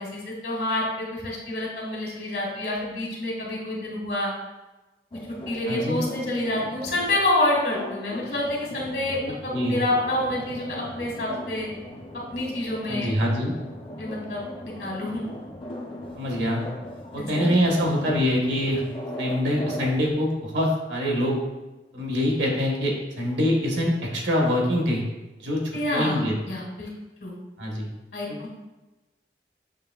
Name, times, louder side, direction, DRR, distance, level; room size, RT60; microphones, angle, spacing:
voice 1, 0.0-4.3 5.5-11.7 12.3-13.1 14.0-14.4 14.8-15.3 17.2-17.5 25.7-26.2 26.5-26.9 27.2-27.3 28.1-28.5, left 1 dB, 70° left, -3 dB, 1.4 m, -28 dB
sound 1, 5.1-20.1, left 1 dB, 30° left, 0.5 m, -38 dB
voice 2, 5.7-6.0 9.5-9.8 12.9-13.5 16.1-16.6 17.1-18.8 19.2-21.4 21.9-25.0 25.4-25.6 25.9-26.3 27.6-27.9 28.3-28.4, equal, 80° right, -1 dB, 1.1 m, -24 dB
6.6 x 3.2 x 2.3 m, 1.1 s
head